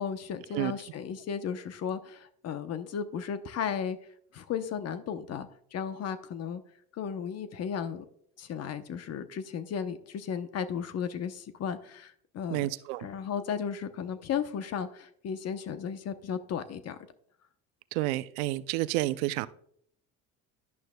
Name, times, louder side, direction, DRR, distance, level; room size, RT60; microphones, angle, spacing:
voice 1, 0.0-4.0 4.3-6.6 6.9-8.0 8.4-12.7 13.0-17.0, left 7 dB, 50° left, 10 dB, 0.9 m, -35 dB
voice 2, 12.5-13.1 17.9-19.5, right 17 dB, 85° right, 16 dB, 0.5 m, -30 dB
11.0 x 10.5 x 2.3 m, 0.65 s
supercardioid pair, 85°, 32 cm